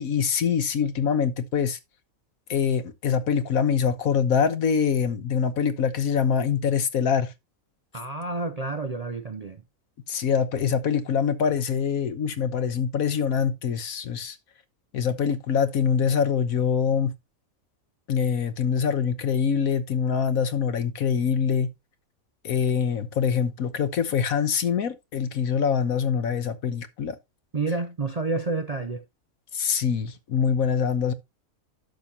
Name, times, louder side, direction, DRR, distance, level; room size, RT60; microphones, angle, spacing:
voice 1, 0.0-1.8 2.5-7.3 10.1-14.4 14.9-17.1 18.1-21.7 22.4-27.1 29.5-31.1, left 7 dB, 75° left, 1.5 m, -24 dB
voice 2, 7.9-9.6 27.5-29.0, right 3 dB, 45° right, 0.5 m, -29 dB
11.5 x 6.9 x 2.8 m
omnidirectional pair, 1.5 m